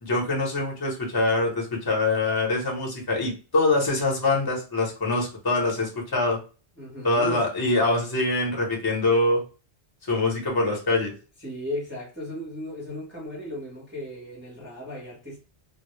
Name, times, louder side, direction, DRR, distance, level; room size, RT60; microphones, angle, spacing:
voice 1, 0.0-6.4 7.0-9.4 10.1-11.1, left 2 dB, 25° left, 0.7 m, -24 dB
voice 2, 6.8-7.4 11.4-15.4, left 1 dB, 10° right, 0.7 m, -36 dB
2.0 x 2.0 x 3.0 m
omnidirectional pair, 1.1 m